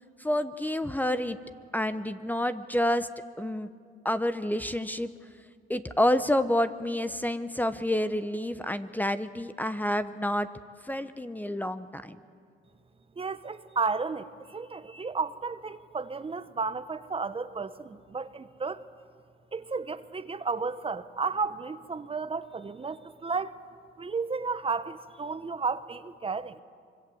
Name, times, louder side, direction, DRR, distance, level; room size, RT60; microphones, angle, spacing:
voice 1, 0.2-1.4 1.7-3.1 3.4-3.7 4.0-5.1 5.7-10.5 10.8-12.2, left 1 dB, 10° left, 11 dB, 0.8 m, -28 dB
voice 2, 13.2-18.8 19.5-23.6 24.0-26.6, right 4 dB, 30° right, 13 dB, 0.9 m, -33 dB
25.0 x 23.5 x 7.8 m, 2.3 s
cardioid pair, 90°, 20 cm